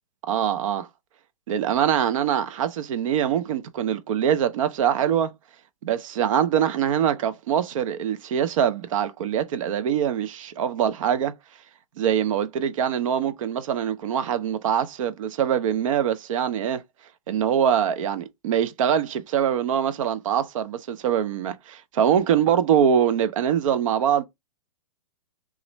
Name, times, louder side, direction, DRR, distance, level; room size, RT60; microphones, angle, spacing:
voice 1, 0.3-0.9 1.5-5.3 5.8-11.3 12.0-16.8 17.3-24.2, right 9 dB, 60° right, 0.5 m, -23 dB
3.1 x 2.4 x 3.0 m
hypercardioid pair, 130°, 19 cm